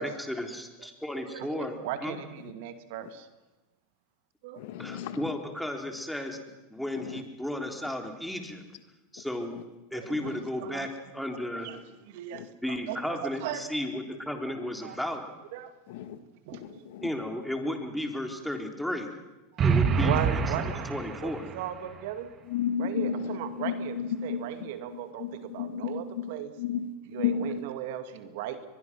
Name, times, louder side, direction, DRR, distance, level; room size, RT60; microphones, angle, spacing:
voice 1, 0.0-2.2 4.8-6.4 6.7-8.6 9.1-9.5 9.9-11.7 12.6-15.2 17.0-19.2 19.6-20.2 20.9-21.5, left 1 dB, ahead, 3.6 m, -34 dB
voice 2, 1.3-3.3 4.4-4.6 9.9-10.3 10.6-10.9 11.6-13.6 14.8-15.0 15.5-15.7 16.5-16.9 19.5-19.6 20.0-20.9 21.2-22.3 22.8-26.5 27.1-28.7, right 11 dB, 65° right, 2.2 m, -37 dB
voice 3, 4.6-5.2 7.0-7.2 10.1-10.4 12.3-12.5 15.9-16.2 16.5-17.1 19.7-20.1 22.5-27.6, left 8 dB, 65° left, 1.7 m, -33 dB
sound 1, 19.6-21.6, right 6 dB, 35° right, 2.1 m, -26 dB
23.5 x 21.5 x 6.2 m
hypercardioid pair, 100°, 0 cm